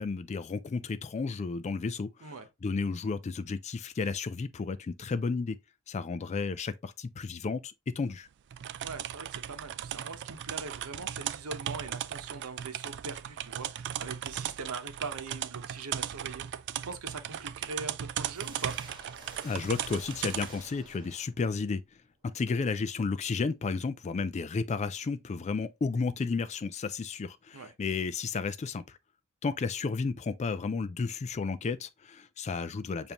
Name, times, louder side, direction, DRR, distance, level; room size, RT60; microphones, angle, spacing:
voice 1, 0.0-2.3 2.6-5.6 5.9-8.3 19.4-21.8 22.2-29.0 29.4-33.1, left 4 dB, 30° left, 0.3 m, -32 dB
sound 1, 8.5-20.6, right 10 dB, 50° right, 0.3 m, -37 dB
voice 2, 8.8-16.4 16.8-18.8 27.5-27.7, right 4 dB, 75° right, 0.9 m, -42 dB
sound 2, 18.3-21.7, right 2 dB, 20° right, 1.6 m, -50 dB
7.0 x 2.7 x 2.9 m
head